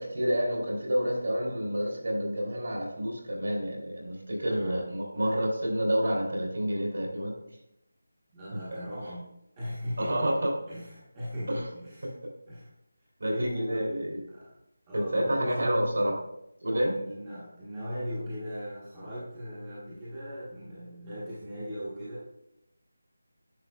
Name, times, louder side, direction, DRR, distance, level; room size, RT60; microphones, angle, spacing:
voice 1, 0.0-7.4 10.0-10.5 11.5-11.7 13.2-14.2 14.9-16.1 16.6-16.9, equal, 55° right, -2 dB, 3.0 m, -29 dB
voice 2, 4.5-4.9 5.2-5.4 8.3-12.1 12.5-12.7 13.2-14.5 14.9-16.1 16.8-22.3, equal, 10° right, -9 dB, 1.1 m, -38 dB
10.0 x 6.8 x 2.3 m, 0.84 s
figure-of-eight pair, 180°, 0 cm